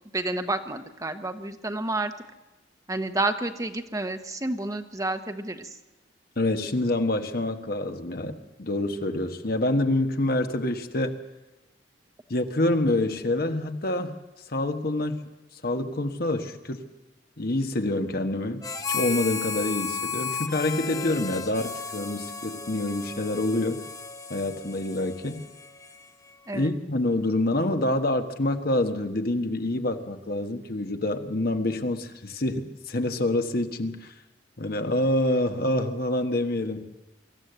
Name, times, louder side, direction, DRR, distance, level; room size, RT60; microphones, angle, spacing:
voice 1, 0.1-2.1 2.9-5.8 21.6-21.7 26.5-26.7, right 2 dB, 20° right, 7 dB, 1.1 m, -30 dB
voice 2, 6.4-11.2 12.3-14.1 14.5-15.2 15.5-16.8 17.4-23.8 24.3-25.4 26.5-34.1 34.6-36.9, left 1 dB, 55° left, 6 dB, 1.4 m, -27 dB
Harmonica, 18.6-26.3, left 5 dB, 20° left, 1.1 m, -34 dB
24.5 x 14.5 x 8.0 m, 1.1 s
head